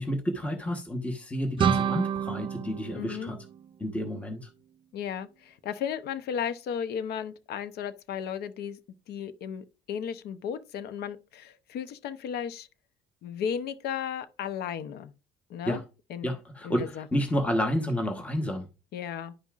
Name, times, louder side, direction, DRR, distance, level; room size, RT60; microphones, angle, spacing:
voice 1, 0.0-3.4 3.8-4.5 15.6-15.8 16.2-18.7, equal, 10° left, 1.2 m, -30 dB
sound 1, 1.6-4.3, right 8 dB, 30° right, 0.4 m, -29 dB
voice 2, 2.9-3.3 4.9-8.8 9.1-12.7 13.2-15.1 15.5-15.8 16.1-16.3 16.6-17.0 18.9-19.3, left 8 dB, 70° left, 0.8 m, -34 dB
11.0 x 5.4 x 2.4 m
cardioid pair, 110°, 17 cm